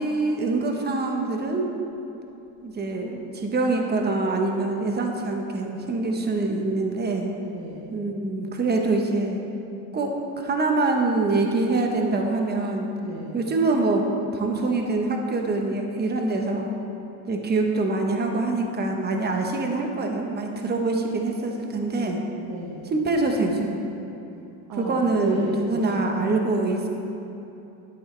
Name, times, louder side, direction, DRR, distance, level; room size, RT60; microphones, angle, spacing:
voice 1, 0.0-1.7 2.6-7.3 7.9-9.4 9.9-12.9 13.3-14.1 14.3-16.7 17.2-22.2 22.9-23.8 24.8-26.9, right 3 dB, 20° right, 2 dB, 1.1 m, -25 dB
voice 2, 7.4-8.0 13.0-13.5 22.4-22.9 24.7-26.0, right 1 dB, 60° right, -2 dB, 1.4 m, -35 dB
10.5 x 9.1 x 3.4 m, 2.9 s
supercardioid pair, 110°, 44 cm